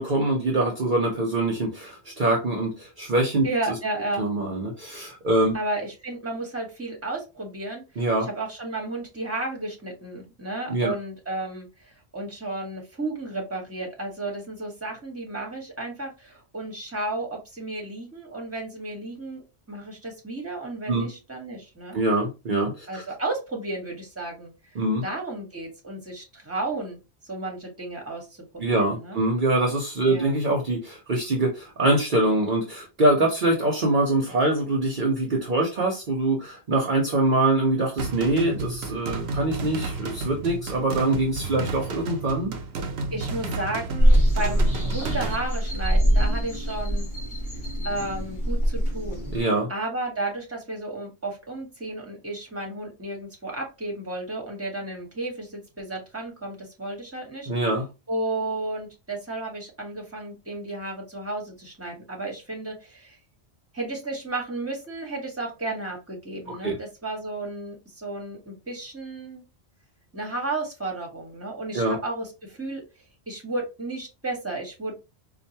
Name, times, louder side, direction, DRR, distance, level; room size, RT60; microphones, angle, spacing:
voice 1, 0.0-3.5 4.2-5.5 8.0-8.3 10.7-10.9 20.9-21.1 21.9-23.0 24.7-25.0 28.6-42.5 49.3-49.7 57.5-57.9 66.5-66.8 71.7-72.0, right 2 dB, 50° right, 1 dB, 0.9 m, -24 dB
voice 2, 3.4-4.2 5.5-7.8 8.2-19.4 19.7-22.0 22.9-24.5 25.0-27.0 27.3-29.2 30.0-30.4 43.1-47.1 47.8-49.3 49.7-57.5 58.1-63.2 63.7-69.4 70.1-72.8 73.3-74.9, right 2 dB, 15° right, 0 dB, 1.3 m, -33 dB
sound 1, 38.0-45.4, right 3 dB, 75° right, 0.9 m, -32 dB
sound 2, 44.0-49.4, equal, 45° left, 2.4 m, -23 dB
4.4 x 2.5 x 2.8 m, 0.26 s
omnidirectional pair, 1.1 m